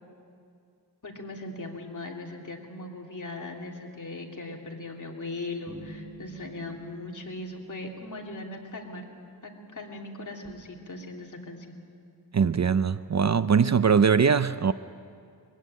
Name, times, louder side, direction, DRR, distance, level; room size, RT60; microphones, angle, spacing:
voice 1, 1.0-9.1 9.4-11.7, left 2 dB, 50° left, 2.9 m, -39 dB
sound 1, 5.7-8.7, right 3 dB, 20° right, 7.2 m, -48 dB
voice 2, 12.3-14.7, right 6 dB, 45° right, 0.5 m, -21 dB
22.5 x 16.0 x 9.9 m
wide cardioid pair, 90°, 40 cm